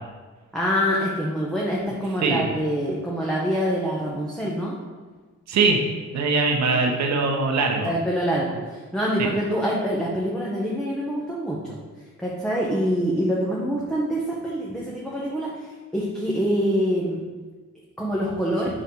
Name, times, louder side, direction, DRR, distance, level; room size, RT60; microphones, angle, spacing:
voice 1, 0.5-4.8 6.9-7.0 7.8-11.8 12.2-17.2 18.0-18.7, equal, ahead, -5 dB, 1.2 m, -25 dB
voice 2, 5.5-5.8 6.1-7.9 9.2-9.3, right 4 dB, 65° right, 2 dB, 1.0 m, -21 dB
5.0 x 4.3 x 5.3 m, 1.4 s
cardioid pair, 90°, 30 cm